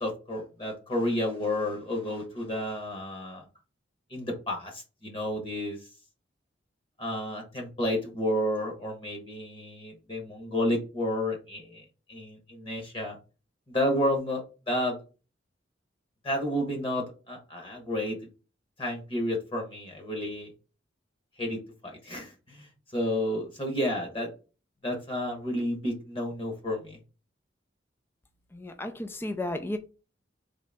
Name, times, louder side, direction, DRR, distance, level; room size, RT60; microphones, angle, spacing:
voice 1, 0.0-3.4 4.1-5.8 7.0-13.2 13.7-15.0 16.2-18.2 18.8-20.5 21.4-24.3 24.8-27.0, left 1 dB, 30° left, 1 dB, 1.1 m, -31 dB
voice 2, 28.5-29.8, left 1 dB, 10° left, 7 dB, 0.4 m, -33 dB
3.8 x 3.2 x 3.4 m, 0.33 s
head